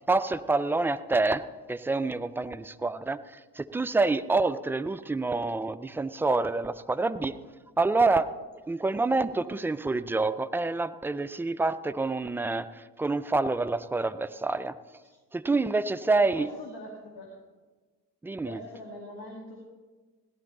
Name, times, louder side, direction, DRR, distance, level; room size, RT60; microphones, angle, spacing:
voice 1, 0.1-3.2 3.6-7.3 7.8-8.3 8.7-14.8 15.3-16.5 18.2-18.6, right 3 dB, 5° right, 12 dB, 0.3 m, -27 dB
voice 2, 16.2-17.4 18.4-19.6, left 1 dB, 55° left, 0 dB, 2.2 m, -42 dB
17.0 x 11.0 x 4.1 m, 1.3 s
figure-of-eight pair, 45°, 48 cm